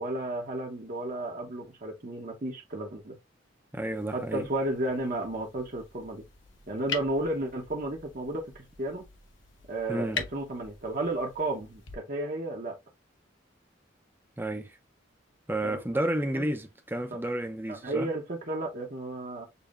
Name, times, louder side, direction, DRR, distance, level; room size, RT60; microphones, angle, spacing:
voice 1, 0.0-3.1 4.1-6.2 6.7-9.0 9.7-12.8 15.6-15.8 16.3-16.5 17.1-17.2 17.7-19.5, right 2 dB, 45° right, 0.9 m, -33 dB
voice 2, 3.7-4.5 9.9-10.2 14.4-14.8 15.5-18.1, right 1 dB, 10° right, 0.6 m, -31 dB
sound 1, 3.9-11.9, left 5 dB, 85° left, 1.1 m, -43 dB
6.9 x 2.8 x 2.5 m
head